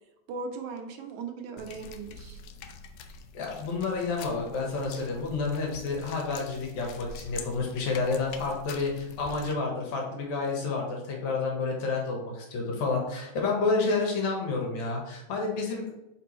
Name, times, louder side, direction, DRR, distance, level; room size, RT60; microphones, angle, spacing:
voice 1, 0.3-2.4, right 4 dB, 75° right, 4 dB, 2.0 m, -38 dB
sound 1, 1.6-9.5, left 4 dB, 90° left, 1.4 m, -44 dB
voice 2, 3.3-15.9, left 3 dB, 70° left, 0 dB, 2.3 m, -30 dB
5.2 x 4.5 x 4.2 m, 0.98 s
omnidirectional pair, 3.6 m